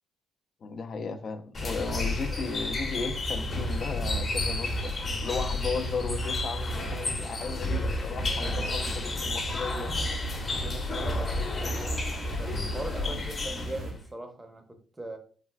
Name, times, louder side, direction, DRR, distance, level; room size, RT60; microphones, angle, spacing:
voice 1, 0.6-4.9 5.2-9.9 13.0-13.2, left 4 dB, 50° left, 0.3 m, -35 dB
sound 1, 1.5-14.0, left 2 dB, 35° left, 0.7 m, -31 dB
voice 2, 3.8-4.3 7.4-7.9 8.4-8.8 10.4-15.2, right 1 dB, 15° right, 0.6 m, -42 dB
sound 2, 7.7-13.9, right 2 dB, 70° right, 0.6 m, -49 dB
3.2 x 2.4 x 2.2 m
cardioid pair, 90°, 0 cm